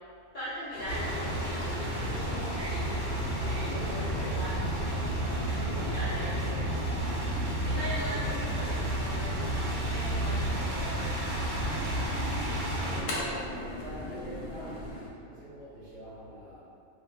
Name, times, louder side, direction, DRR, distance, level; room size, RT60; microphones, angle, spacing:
voice 1, 0.3-7.1 7.6-12.3, equal, 55° left, -14 dB, 0.5 m, -41 dB
sound 1, 0.7-15.1, left 1 dB, 85° left, 1.0 m, -40 dB
sound 2, 0.8-14.9, equal, 35° right, 0.7 m, -45 dB
sound 3, 0.9-13.0, right 1 dB, 90° right, 1.1 m, -32 dB
voice 2, 8.0-8.5 12.1-14.9 15.2-16.6, equal, 65° right, -8 dB, 1.0 m, -44 dB
2.5 x 2.0 x 2.4 m, 2.4 s
omnidirectional pair, 1.5 m